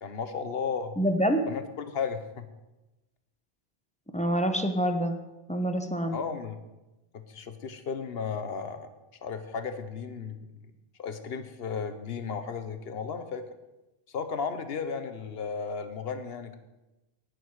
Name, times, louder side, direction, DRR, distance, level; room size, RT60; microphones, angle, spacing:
voice 1, 0.0-1.0 1.5-2.5 6.1-6.6 7.1-8.9 9.2-10.5 11.0-13.4 14.1-16.6, left 6 dB, 70° left, 9 dB, 1.2 m, -34 dB
voice 2, 1.0-1.4 4.1-5.1 5.5-6.2, equal, 5° left, 5 dB, 0.8 m, -26 dB
18.0 x 6.5 x 4.8 m, 1.0 s
omnidirectional pair, 1.1 m